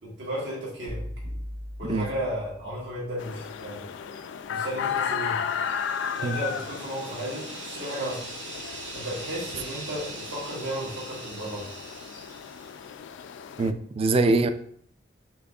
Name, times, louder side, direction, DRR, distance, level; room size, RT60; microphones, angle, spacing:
voice 1, 0.0-1.0 1.8-3.8 4.5-5.4 6.2-8.2 8.9-11.7, equal, 70° right, -5 dB, 1.3 m, -34 dB
sound 1, 0.9-3.0, equal, 55° right, 1.7 m, -38 dB
sound 2, 3.2-13.7, left 7 dB, 80° left, 0.3 m, -34 dB
sound 3, 5.2-13.0, right 3 dB, 90° right, 0.9 m, -42 dB
voice 2, 13.6-14.5, right 3 dB, 30° right, 10 dB, 0.3 m, -23 dB
5.9 x 3.5 x 2.3 m, 0.63 s
head